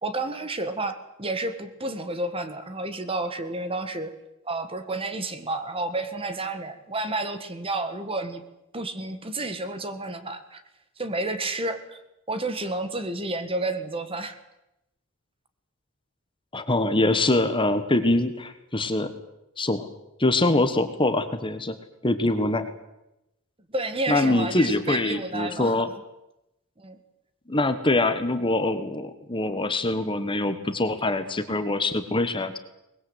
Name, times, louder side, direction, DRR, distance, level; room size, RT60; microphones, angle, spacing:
voice 1, 0.0-4.1 4.4-8.4 8.7-10.6 11.0-12.0 12.3-14.4 23.7-25.8 26.8-27.0, right 2 dB, 25° right, 9 dB, 1.7 m, -30 dB
voice 2, 16.5-19.1 19.6-19.9 20.2-21.7 22.0-22.7 24.1-25.9 27.5-32.6, left 2 dB, 20° left, 9 dB, 1.4 m, -24 dB
23.0 x 20.5 x 8.1 m, 0.89 s
head